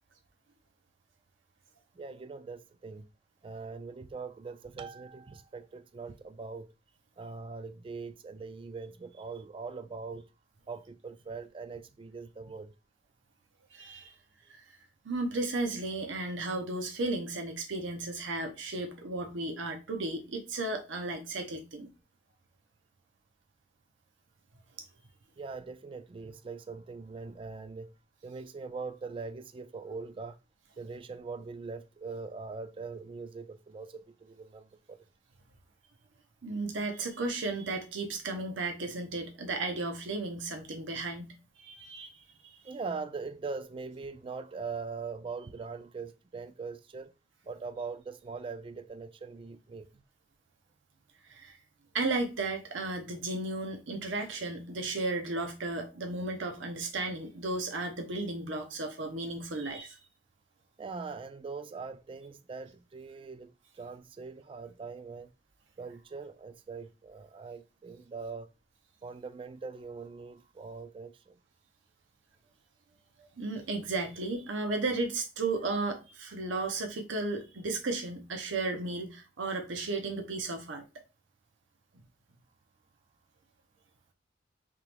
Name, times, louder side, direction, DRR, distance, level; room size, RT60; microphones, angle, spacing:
voice 1, 2.0-3.1 3.4-6.7 7.2-10.3 10.7-12.7 25.4-27.9 28.2-30.4 30.8-35.0 42.6-47.1 47.4-50.0 60.8-65.3 65.8-68.5 69.0-71.4, right 4 dB, 30° right, 0.3 m, -42 dB
voice 2, 13.7-14.1 15.0-21.9 36.4-42.1 42.4-42.6 51.3-51.6 51.9-60.0 73.4-80.8, right 2 dB, 85° right, 0.8 m, -34 dB
3.6 x 2.9 x 3.3 m
head